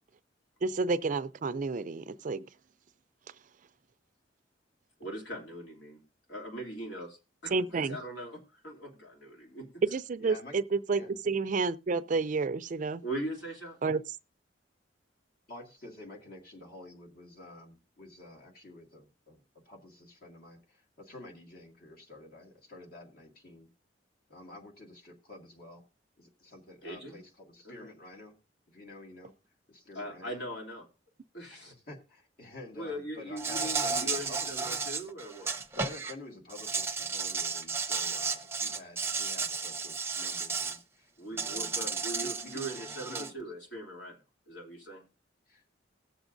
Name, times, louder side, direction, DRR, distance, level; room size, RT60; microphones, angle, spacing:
voice 1, 0.6-2.4 7.5-8.0 9.9-11.0 11.3-13.0 13.8-14.0, right 4 dB, 45° right, 0.4 m, -30 dB
voice 2, 5.0-6.0 6.3-9.8 13.0-13.8 26.8-27.2 27.8-27.9 29.9-30.9 31.3-31.7 32.7-35.5 41.2-44.2 44.5-45.0, right 1 dB, 70° left, 3.0 m, -40 dB
voice 3, 10.2-10.5 10.9-11.1 15.5-23.7 24.3-25.8 26.2-28.4 28.7-29.3 29.7-30.4 31.5-34.9 35.7-43.3 45.5-45.6, left 2 dB, 55° left, 2.2 m, -49 dB
Insect, 33.4-36.1 36.5-40.8 41.4-43.3, right 4 dB, 15° right, 0.7 m, -33 dB
19.5 x 7.1 x 2.6 m
head